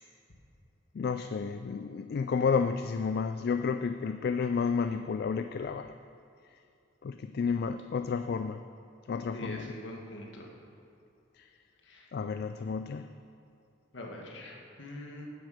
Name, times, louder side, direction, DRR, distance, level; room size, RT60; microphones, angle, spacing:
voice 1, 0.9-5.9 7.0-8.6 9.1-9.8 11.4-11.5 12.1-13.1, left 5 dB, 55° left, 9 dB, 0.3 m, -31 dB
voice 2, 9.3-10.5 11.8-12.1 13.9-15.3, left 1 dB, 75° left, 0 dB, 1.7 m, -43 dB
9.9 x 7.8 x 6.4 m, 2.6 s
head